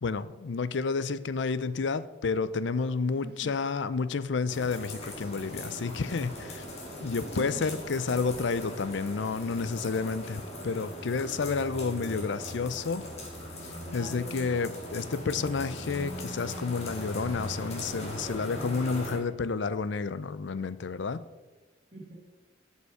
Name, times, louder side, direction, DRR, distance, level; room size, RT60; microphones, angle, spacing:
voice 1, 0.0-6.7 7.0-13.1 13.9-21.3, left 4 dB, 70° left, 15 dB, 0.5 m, -30 dB
sound 1, 4.5-19.2, equal, 35° left, 2.2 m, -40 dB
voice 2, 6.4-7.1 14.0-14.6 21.9-22.2, right 1 dB, 35° right, -8 dB, 2.0 m, -46 dB
12.0 x 5.5 x 4.9 m, 1.2 s
head